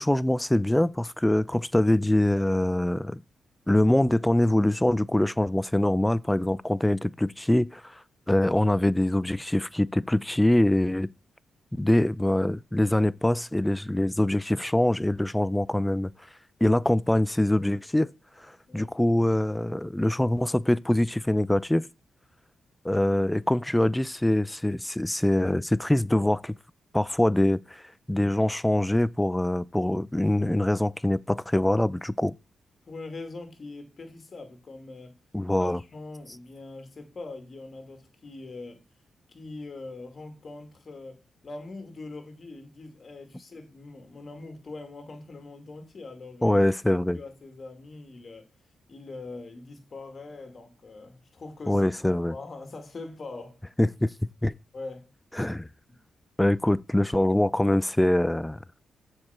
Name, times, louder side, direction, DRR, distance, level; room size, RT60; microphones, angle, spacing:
voice 1, 0.0-3.2 3.7-7.9 8.3-11.1 11.7-16.1 16.6-18.1 18.7-21.9 22.8-26.5 26.9-27.8 28.1-32.3 35.3-35.8 46.4-47.2 51.7-52.3 53.8-54.1 54.4-54.5 55.4-55.7 56.4-58.6, left 1 dB, 10° left, 0.4 m, -24 dB
voice 2, 32.9-35.1 35.6-38.8 39.3-46.6 47.1-48.5 48.9-51.9 52.3-53.6 54.7-55.1 55.9-56.0, left 3 dB, 45° left, 2.4 m, -42 dB
7.2 x 5.0 x 5.8 m
cardioid pair, 60°, 0 cm